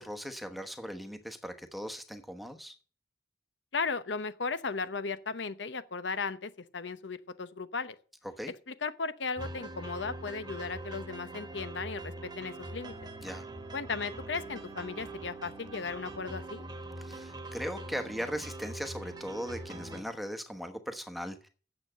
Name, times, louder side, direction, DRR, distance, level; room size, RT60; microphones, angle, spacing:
voice 1, 0.0-2.7 8.2-8.5 13.2-13.5 17.0-21.5, equal, ahead, 1.0 m, -39 dB
voice 2, 3.7-8.0 8.7-12.9 13.7-16.6, left 4 dB, 85° left, 0.8 m, -36 dB
sound 1, 9.4-20.0, right 2 dB, 25° right, 1.3 m, -43 dB
8.8 x 7.3 x 7.7 m
head